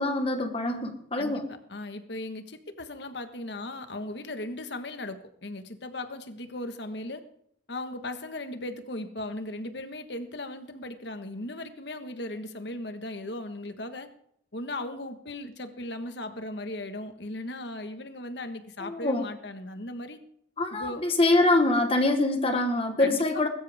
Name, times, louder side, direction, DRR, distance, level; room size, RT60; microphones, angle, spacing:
voice 1, 0.0-1.5 18.8-19.3 20.6-23.5, left 2 dB, 30° left, 6 dB, 1.4 m, -24 dB
voice 2, 1.7-7.2 7.7-14.1 14.5-20.2 20.7-21.0 23.0-23.5, left 1 dB, 60° left, 8 dB, 1.5 m, -37 dB
21.0 x 13.0 x 3.6 m, 0.69 s
head